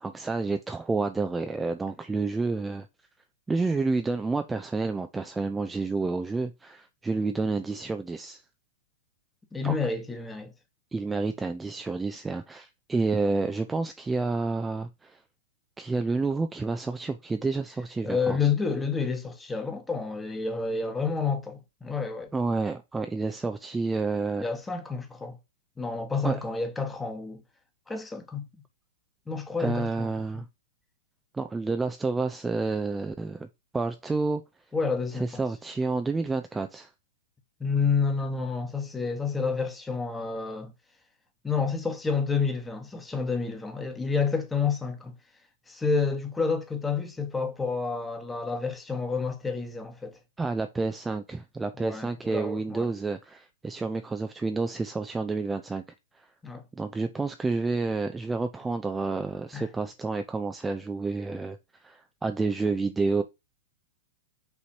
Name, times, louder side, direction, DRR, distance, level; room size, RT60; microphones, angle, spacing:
voice 1, 0.0-2.9 3.5-8.4 9.6-9.8 10.9-15.2 15.8-18.5 22.3-24.5 26.2-26.4 29.6-30.5 31.3-33.5 33.7-34.4 35.2-36.9 50.4-55.8 56.2-56.3 56.7-61.6 61.8-63.2, right 3 dB, 10° right, 0.4 m, -29 dB
voice 2, 9.5-10.5 18.0-22.3 24.4-25.4 25.8-27.4 27.9-28.5 29.3-30.1 34.7-35.4 37.6-40.7 41.4-45.1 45.7-50.2 51.8-52.9 56.4-56.6 59.5-59.7, left 5 dB, 10° left, 1.1 m, -29 dB
5.8 x 3.1 x 2.7 m
hypercardioid pair, 120°, 0 cm